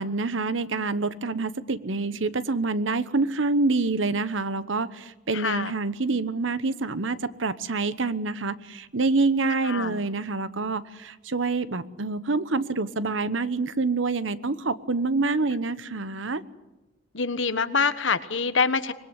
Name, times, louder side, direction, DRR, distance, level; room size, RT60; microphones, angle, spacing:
voice 1, 0.0-16.4, right 3 dB, 75° right, 15 dB, 1.0 m, -27 dB
voice 2, 5.3-5.7 9.7-10.0 17.1-18.9, left 5 dB, 75° left, 12 dB, 1.3 m, -25 dB
25.0 x 21.0 x 8.2 m, 1.0 s
head